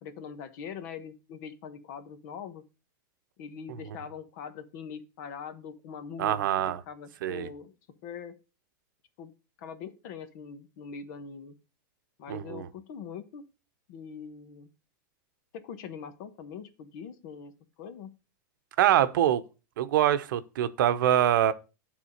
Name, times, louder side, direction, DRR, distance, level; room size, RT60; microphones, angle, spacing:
voice 1, 0.0-2.6 3.4-7.8 8.0-8.3 9.2-9.3 9.6-11.6 12.2-13.4 13.9-14.7 15.5-17.5 17.8-18.1, left 6 dB, 60° left, 1.3 m, -42 dB
voice 2, 6.2-6.8 7.2-7.5 12.3-12.7 18.8-19.4 19.8-21.5, right 11 dB, 75° right, 0.8 m, -24 dB
9.4 x 3.6 x 6.4 m
supercardioid pair, 135°, 11 cm